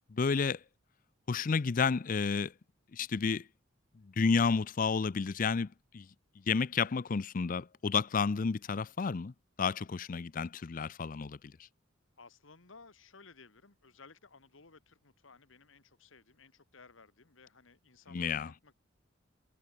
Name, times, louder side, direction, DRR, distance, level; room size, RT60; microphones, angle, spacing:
voice 1, 0.1-0.6 1.3-2.5 2.9-3.5 4.0-6.1 6.5-9.3 9.6-11.4 18.1-18.5, left 5 dB, 40° left, 0.5 m, -31 dB
voice 2, 12.2-18.7, left 4 dB, 80° left, 1.8 m, -58 dB
head